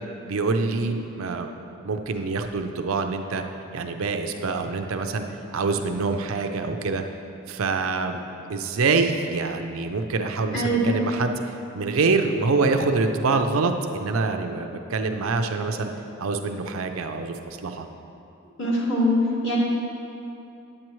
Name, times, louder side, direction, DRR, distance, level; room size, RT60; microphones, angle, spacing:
voice 1, 0.2-1.5 1.8-3.4 3.7-5.2 5.5-7.0 7.5-8.2 8.5-11.3 11.7-15.9 16.2-17.9, right 4 dB, 70° right, 6 dB, 0.5 m, -25 dB
voice 2, 10.5-10.9 18.6-19.6, left 1 dB, 60° left, -6 dB, 2.0 m, -23 dB
8.7 x 8.5 x 3.1 m, 2.7 s
head